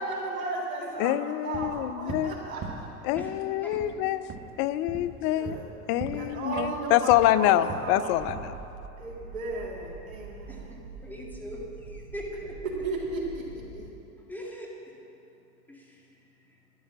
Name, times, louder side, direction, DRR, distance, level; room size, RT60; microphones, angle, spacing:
voice 1, 0.0-2.8 5.4-5.7 6.1-8.3 9.0-10.7 12.6-13.4 13.7-13.9, right 3 dB, 60° right, -2 dB, 3.4 m, -35 dB
voice 2, 1.0-2.4 3.0-4.3 4.6-5.6 5.9-8.6, left 13 dB, 30° left, 14 dB, 0.4 m, -25 dB
sound 1, 1.5-2.3 2.6-3.4 3.7-4.0 4.3-4.5 4.9-5.1 5.4-5.7 6.0-6.3 6.6-7.3 7.7-8.0 8.3-8.6, right 4 dB, 30° right, 1.4 m, -40 dB
sound 2, 8.1-13.9, right 5 dB, 85° right, 3.7 m, -45 dB
voice 3, 10.5-12.6 14.3-14.7 15.7-16.1 16.4-16.5, equal, 5° left, -2 dB, 2.1 m, -41 dB
12.0 x 11.0 x 6.0 m, 2.8 s
hypercardioid pair, 110°, 46 cm